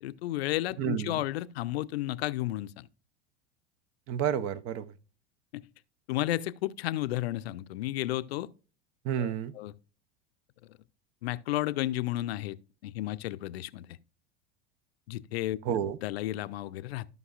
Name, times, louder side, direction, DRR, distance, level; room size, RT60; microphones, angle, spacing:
voice 1, 0.0-2.9 5.5-5.6 6.1-8.5 9.2-9.7 11.2-12.6 12.8-13.9 15.1-15.6 16.0-17.1, left 15 dB, 75° left, 0.5 m, -32 dB
voice 2, 0.8-1.2 4.1-4.9 9.0-9.5 15.6-16.0, right 9 dB, 50° right, 0.7 m, -30 dB
14.0 x 5.4 x 2.4 m
hypercardioid pair, 85°, 32 cm